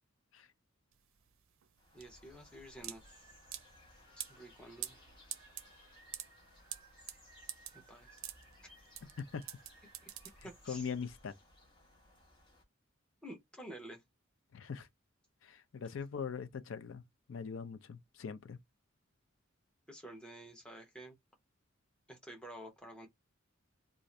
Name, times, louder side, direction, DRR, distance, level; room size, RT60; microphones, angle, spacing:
sound 1, 0.9-10.8, right 12 dB, 75° right, 0.4 m, -47 dB
sound 2, 1.8-12.6, left 1 dB, 25° left, 1.1 m, -62 dB
voice 1, 1.9-3.3 4.2-5.0 7.7-8.2 10.4-10.9 13.2-14.0 19.9-21.2 22.1-23.1, right 1 dB, 5° left, 0.8 m, -50 dB
sound 3, 3.0-10.7, right 3 dB, 15° right, 1.0 m, -64 dB
voice 2, 10.7-11.3 14.5-14.9 15.4-17.0 17.3-18.6, left 6 dB, 70° left, 0.5 m, -41 dB
2.6 x 2.4 x 3.1 m
head